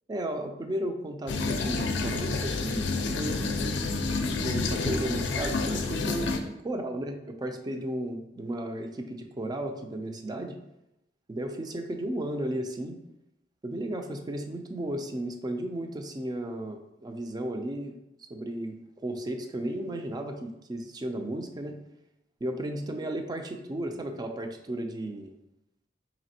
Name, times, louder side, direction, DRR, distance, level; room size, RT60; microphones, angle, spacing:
voice 1, 0.1-2.9 3.1-3.9 4.2-10.5 11.3-13.0 13.6-17.9 18.3-21.8 22.4-25.3, right 1 dB, 25° right, 5 dB, 0.3 m, -34 dB
sound 1, 1.3-6.4, left 3 dB, 85° left, 0.4 m, -29 dB
4.1 x 3.3 x 2.7 m, 0.87 s
head